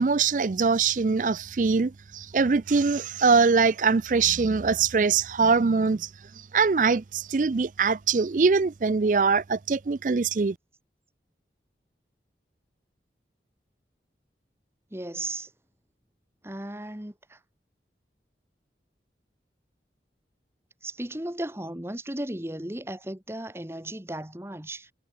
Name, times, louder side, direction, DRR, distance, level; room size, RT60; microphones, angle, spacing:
voice 1, 0.0-6.1 6.5-10.6, right 4 dB, 45° right, 0.4 m, -23 dB
voice 2, 14.9-15.5 16.4-17.4 20.8-24.9, right 1 dB, 15° right, 1.4 m, -35 dB
head